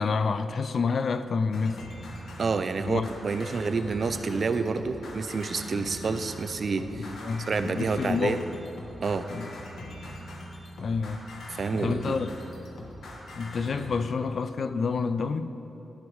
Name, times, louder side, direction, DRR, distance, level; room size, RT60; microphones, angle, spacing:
voice 1, 0.0-1.8 2.9-3.1 6.9-8.4 9.3-9.5 10.8-11.3 11.7-12.3 13.4-15.6, left 5 dB, 50° left, 0.3 m, -28 dB
sound 1, 1.5-13.9, left 1 dB, 80° left, 1.2 m, -42 dB
voice 2, 2.4-7.1 7.5-8.4 9.0-9.3 11.5-12.2, right 4 dB, 45° right, 0.4 m, -28 dB
12.0 x 5.4 x 4.8 m
wide cardioid pair, 130°, 0 cm